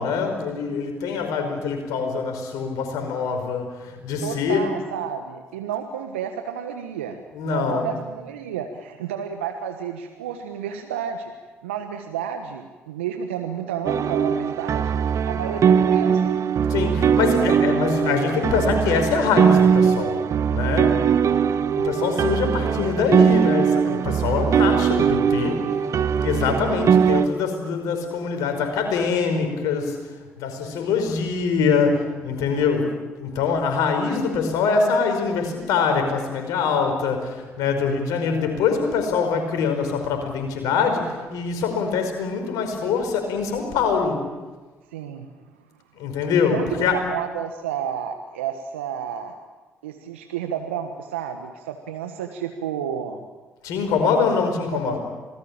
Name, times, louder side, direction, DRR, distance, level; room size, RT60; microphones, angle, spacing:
voice 1, 0.0-4.6 7.3-7.9 16.7-20.2 20.5-21.0 21.7-25.6 26.2-30.0 30.4-32.9 33.2-44.2 46.0-47.0 53.6-55.0, left 5 dB, 70° left, 5 dB, 5.2 m, -24 dB
voice 2, 4.2-11.3 11.6-15.0 15.2-16.3 44.9-45.5 46.5-49.4 49.8-53.2 54.0-54.2 54.7-55.0, right 8 dB, 85° right, 6 dB, 1.3 m, -31 dB
sound 1, 13.9-27.3, right 7 dB, 55° right, 1.0 m, -20 dB
27.0 x 20.0 x 8.8 m, 1.3 s
hypercardioid pair, 45°, 6 cm